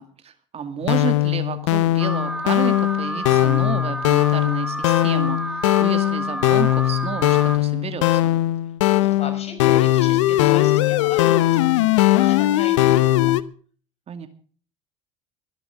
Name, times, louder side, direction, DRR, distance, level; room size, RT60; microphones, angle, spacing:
voice 1, 0.0-8.4 14.1-14.3, right 6 dB, 40° right, 9 dB, 2.2 m, -31 dB
sound 1, 0.8-13.4, left 15 dB, 75° left, 0.8 m, -19 dB
Alarm, 2.0-7.6, right 1 dB, 5° right, 1.1 m, -30 dB
voice 2, 8.9-13.4, left 5 dB, 40° left, 7 dB, 5.8 m, -37 dB
23.5 x 11.5 x 3.7 m, 0.43 s
hypercardioid pair, 65°, 16 cm